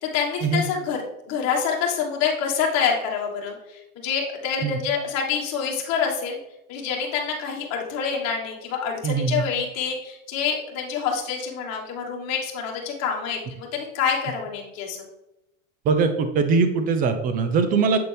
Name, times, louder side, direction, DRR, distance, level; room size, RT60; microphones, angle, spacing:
voice 1, 0.0-6.4 6.7-15.0, left 6 dB, 40° left, -1 dB, 1.6 m, -27 dB
voice 2, 9.0-9.4 15.8-18.0, right 5 dB, 20° right, 9 dB, 0.5 m, -21 dB
7.7 x 4.0 x 3.4 m, 0.88 s
supercardioid pair, 140°, 41 cm